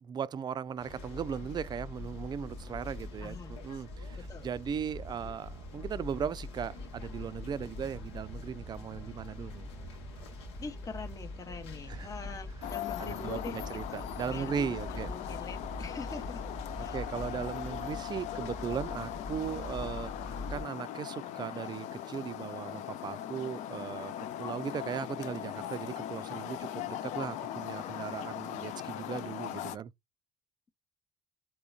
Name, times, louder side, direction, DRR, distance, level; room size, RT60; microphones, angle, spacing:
voice 1, 0.0-10.2 11.9-12.1 13.0-15.1 16.8-29.9, right 7 dB, 30° right, 0.3 m, -38 dB
sound 1, 0.8-20.6, left 2 dB, 80° left, 0.9 m, -43 dB
voice 2, 3.2-3.6 4.1-4.5 10.6-16.5 16.8-17.0, left 4 dB, 25° left, 0.7 m, -44 dB
sound 2, 12.6-29.8, left 11 dB, 60° left, 0.4 m, -40 dB
3.6 x 2.1 x 2.3 m
hypercardioid pair, 60°, 14 cm